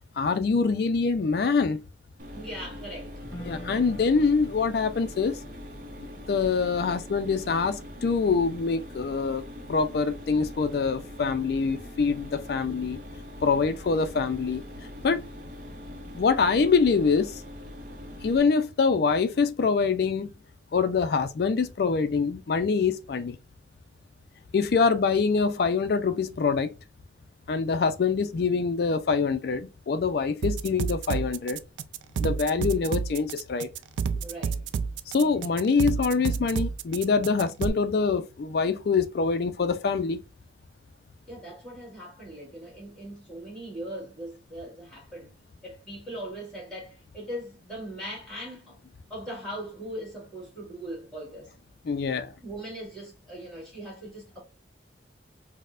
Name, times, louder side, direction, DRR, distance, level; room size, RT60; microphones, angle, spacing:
voice 1, 0.2-1.8 3.4-5.4 6.3-9.4 9.7-13.0 13.4-14.6 15.0-15.2 16.1-17.4 18.2-20.3 20.7-23.4 24.5-26.7 27.5-31.6 32.2-33.7 35.1-40.2 51.9-52.3, left 5 dB, 55° left, 0.3 m, -25 dB
Mechanisms, 2.2-18.4, left 1 dB, 50° right, 0.7 m, -42 dB
voice 2, 2.3-3.2 34.2-34.6 41.3-45.3 45.6-48.8 49.1-51.5 52.4-54.4, right 1 dB, 5° left, 1.7 m, -40 dB
Guitar, 3.2-9.3, equal, 35° left, 1.0 m, -47 dB
sound 1, 30.4-37.7, right 6 dB, 80° right, 0.3 m, -29 dB
4.2 x 2.1 x 2.4 m
head